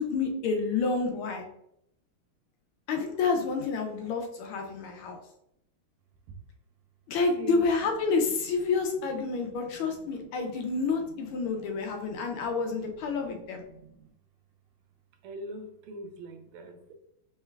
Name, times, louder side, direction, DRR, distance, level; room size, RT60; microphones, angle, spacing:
voice 1, 0.0-1.5 2.9-5.2 7.1-13.6, left 4 dB, 80° left, 3 dB, 1.5 m, -29 dB
voice 2, 9.9-10.3 11.0-11.1 11.6-12.5 13.1-14.1 15.2-16.9, right 2 dB, 90° right, 6 dB, 1.5 m, -45 dB
3.7 x 3.2 x 2.2 m, 0.77 s
omnidirectional pair, 2.3 m